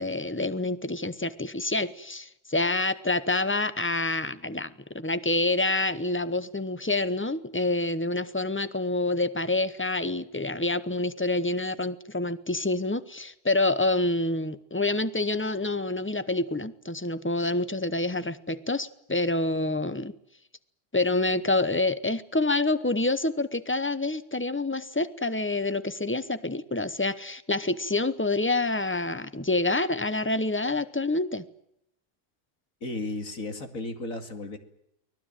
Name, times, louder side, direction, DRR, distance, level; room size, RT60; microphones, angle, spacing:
voice 1, 0.0-20.1 20.9-31.4, left 2 dB, 15° left, 14 dB, 0.4 m, -27 dB
voice 2, 32.8-34.6, left 2 dB, 50° left, 7 dB, 2.8 m, -34 dB
24.5 x 18.5 x 9.0 m, 0.76 s
omnidirectional pair, 1.8 m